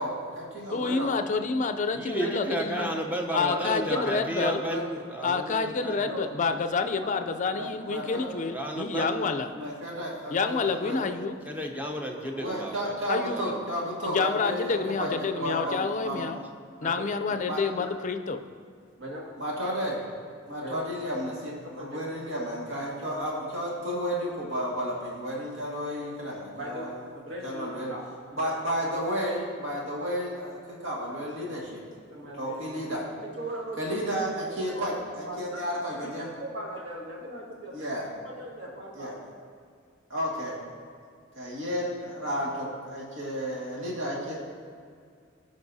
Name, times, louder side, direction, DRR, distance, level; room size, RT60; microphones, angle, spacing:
voice 1, 0.0-1.1 4.6-4.8 5.9-6.0 7.5-8.3 9.5-11.0 12.1-16.3 17.5-17.6 19.4-20.0 20.5-27.0 27.4-27.9 28.3-31.8 32.3-33.0 33.8-36.3 37.7-38.1 38.9-39.1 40.1-40.6 41.4-44.3, equal, 90° right, -4 dB, 1.9 m, -32 dB
voice 2, 0.7-2.9 3.3-4.6 5.2-9.5 10.3-11.4 13.1-13.4 14.0-16.4 16.8-18.4, left 4 dB, 40° left, 8 dB, 0.4 m, -28 dB
voice 3, 1.9-6.1 8.5-9.3 10.6-10.7 11.4-12.9 13.3-13.5, equal, 10° right, 2 dB, 0.7 m, -33 dB
voice 4, 3.9-4.5 6.0-6.2 7.0-7.1 7.4-7.5 8.9-9.0 15.4-15.7 16.8-17.0 17.8-17.9 19.0-19.2 20.6-20.8 21.8-22.0 26.6-26.9 27.3-28.0 28.4-28.5 32.1-32.6 32.9-33.0 33.4-33.8 34.1-34.3 34.6-34.8 35.3-35.6 36.2-37.7 38.2-39.1, right 1 dB, 60° right, -3 dB, 1.8 m, -38 dB
15.0 x 5.3 x 2.7 m, 2.2 s
head